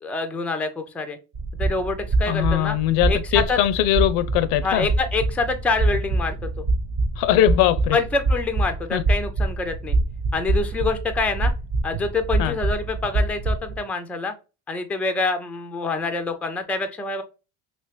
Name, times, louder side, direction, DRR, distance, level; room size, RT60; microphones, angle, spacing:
voice 1, 0.0-1.2 1.6-2.8 3.1-3.6 4.6-6.7 7.9-10.0 10.3-11.5 11.8-14.3 14.7-17.2, left 3 dB, 5° left, 0.4 m, -26 dB
sound 1, 1.3-13.8, right 2 dB, 50° right, 1.1 m, -25 dB
voice 2, 2.3-4.9 7.2-8.0 8.9-9.0 12.4-12.6, left 12 dB, 75° left, 0.5 m, -21 dB
3.0 x 2.9 x 3.1 m
supercardioid pair, 95°, 44 cm